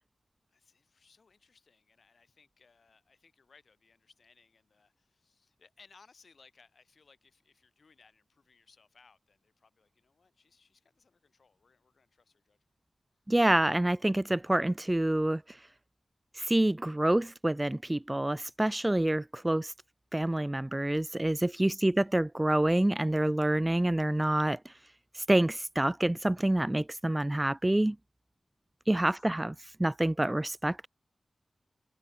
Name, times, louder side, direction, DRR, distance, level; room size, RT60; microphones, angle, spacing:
voice 1, 0.5-12.6 21.6-21.9 29.1-29.3, left 4 dB, 70° left, 6.4 m, -64 dB
voice 2, 13.3-15.4 16.4-19.7 20.1-24.6 25.2-28.0 28.9-29.5 29.8-30.9, right 1 dB, 20° right, 0.4 m, -27 dB
cardioid pair, 55°, 0 cm